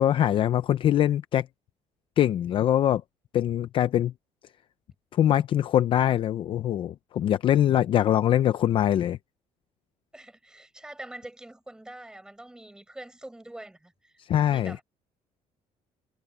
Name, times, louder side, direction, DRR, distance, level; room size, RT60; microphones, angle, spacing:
voice 1, 0.0-1.5 2.2-3.0 3.3-4.1 5.2-9.2 14.3-14.8, left 11 dB, 45° left, 0.6 m, -23 dB
voice 2, 10.1-14.2 14.5-14.8, right 1 dB, 5° right, 7.5 m, -44 dB
cardioid pair, 160°, 13 cm